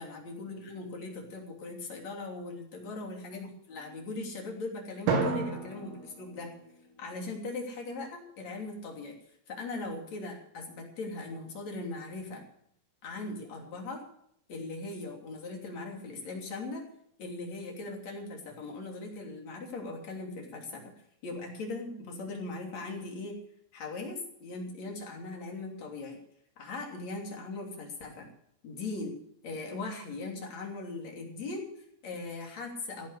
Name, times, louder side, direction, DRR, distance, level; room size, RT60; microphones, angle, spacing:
voice 1, 0.0-6.5 7.0-9.2 9.5-12.4 13.0-14.0 14.5-16.9 17.2-20.9 21.2-23.4 23.7-26.2 26.6-28.3 28.6-29.2 29.4-33.1, left 3 dB, 40° left, 1 dB, 3.6 m, -39 dB
Drum, 5.1-7.4, right 5 dB, 80° right, 5.4 m, -33 dB
16.0 x 11.0 x 6.6 m, 0.68 s
omnidirectional pair, 5.9 m